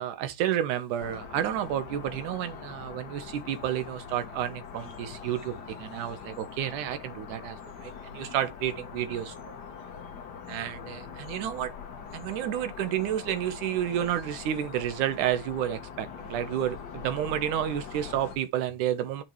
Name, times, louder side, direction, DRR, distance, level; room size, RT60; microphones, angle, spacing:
voice 1, 0.0-9.6 10.5-11.7 12.1-19.2, right 11 dB, 90° right, 2.5 m, -31 dB
sound 1, 1.0-18.4, left 6 dB, 60° left, 1.1 m, -43 dB
10.5 x 4.4 x 3.1 m
omnidirectional pair, 3.4 m